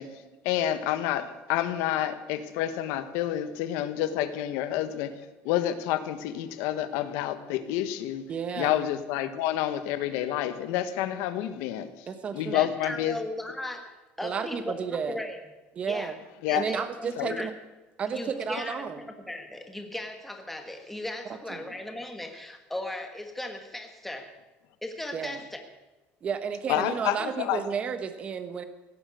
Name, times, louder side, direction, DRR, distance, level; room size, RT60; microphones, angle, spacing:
voice 1, 0.0-8.3 8.6-12.1 12.3-13.2 16.4-16.6 17.2-17.4 26.7-27.6, left 12 dB, 85° left, 11 dB, 1.4 m, -29 dB
voice 2, 8.3-8.8 12.1-12.7 14.2-15.2 15.7-16.2 16.5-17.5 18.0-19.0 21.5-21.7 25.1-25.4 26.2-28.6, right 6 dB, 25° right, 10 dB, 1.1 m, -32 dB
voice 3, 12.5-13.9 14.2-15.4 15.8-16.1 16.5-17.5 18.1-24.3 24.8-25.6, left 1 dB, 5° left, 5 dB, 1.5 m, -37 dB
17.0 x 7.9 x 9.6 m, 1.1 s
cardioid pair, 170°, 5 cm